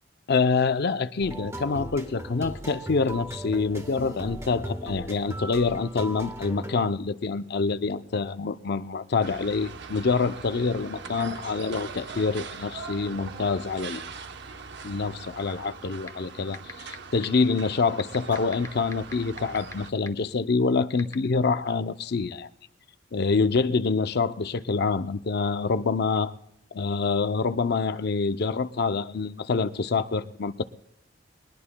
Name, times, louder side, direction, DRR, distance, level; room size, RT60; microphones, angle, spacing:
voice 1, 0.3-14.1 14.8-22.5 23.1-26.3 26.7-30.6, left 4 dB, 55° left, 0.6 m, -26 dB
sound 1, 1.2-6.8, right 1 dB, 15° right, 1.4 m, -37 dB
sound 2, 9.2-19.9, right 5 dB, 60° right, 0.9 m, -41 dB
sound 3, 16.1-16.2 16.5-16.9 17.2-17.3 18.0-19.7 20.1-20.2 21.0-21.1, left 3 dB, 15° left, 0.9 m, -36 dB
21.5 x 20.0 x 2.2 m
head